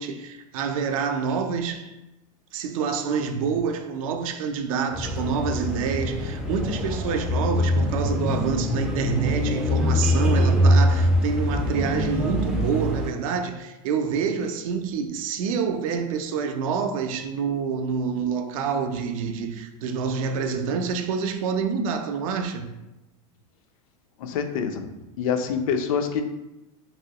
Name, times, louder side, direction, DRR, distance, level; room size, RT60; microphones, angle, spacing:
voice 1, 0.0-1.9 2.5-22.7, right 6 dB, 75° right, 0.4 m, -27 dB
sound 1, 4.9-13.1, equal, 5° right, 0.3 m, -23 dB
voice 2, 24.2-24.8 25.2-26.2, left 7 dB, 70° left, 0.4 m, -25 dB
3.0 x 2.9 x 2.8 m
supercardioid pair, 140°, 18 cm